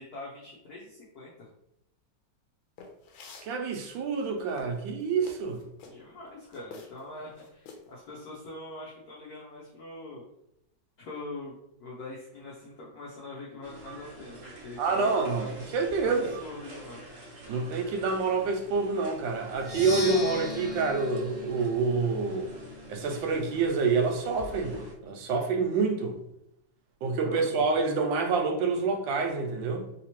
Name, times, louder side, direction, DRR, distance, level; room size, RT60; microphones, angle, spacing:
voice 1, 0.0-1.5 5.9-10.2 11.0-15.7 16.0-17.1 27.2-27.6, left 2 dB, 65° left, 1.0 m, -43 dB
sound 1, 2.8-3.5 4.1-6.0 6.5-7.1 7.4-7.9, left 4 dB, 90° left, 1.4 m, -47 dB
voice 2, 3.4-5.6 14.8-15.5 15.7-16.4 17.5-22.5 22.9-26.2 27.0-29.9, right 4 dB, 80° right, 1.3 m, -27 dB
sound 2, 13.6-24.9, right 1 dB, 60° right, 0.6 m, -46 dB
Percussion, 19.5-23.3, left 3 dB, 15° left, 1.0 m, -39 dB
3.3 x 2.9 x 2.9 m
omnidirectional pair, 2.0 m